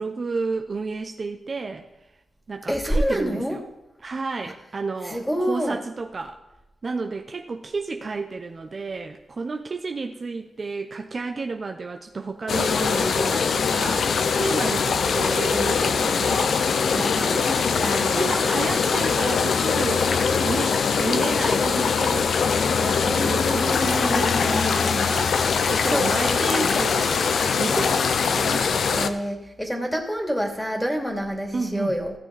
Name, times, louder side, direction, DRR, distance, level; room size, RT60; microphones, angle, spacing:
voice 1, 0.0-1.9 2.5-3.6 4.0-5.2 5.5-6.4 6.8-17.6 18.1-25.3 25.6-27.3 27.6-28.7 31.5-32.0, right 4 dB, 50° right, 4 dB, 0.8 m, -31 dB
voice 2, 2.7-3.6 4.4-4.5 5.0-5.8 17.0-18.3 23.1-25.1 25.9-26.7 28.9-32.1, equal, 5° left, 2 dB, 2.7 m, -28 dB
sound 1, 12.5-29.1, left 5 dB, 75° left, 0.6 m, -22 dB
15.5 x 7.0 x 4.1 m, 0.92 s
cardioid pair, 50°, 0 cm